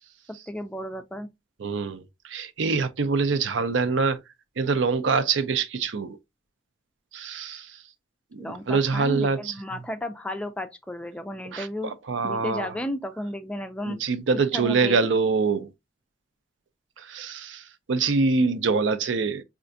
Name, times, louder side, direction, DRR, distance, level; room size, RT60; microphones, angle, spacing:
voice 1, 0.5-1.3 8.4-11.9 12.2-14.0 14.5-15.0, left 1 dB, 5° left, 0.3 m, -33 dB
voice 2, 1.6-4.2 4.6-6.2 7.1-7.7 8.3-9.4 11.5-12.7 13.9-15.7 17.0-17.6 17.9-19.4, right 4 dB, 85° right, 0.5 m, -25 dB
4.4 x 2.4 x 2.5 m
head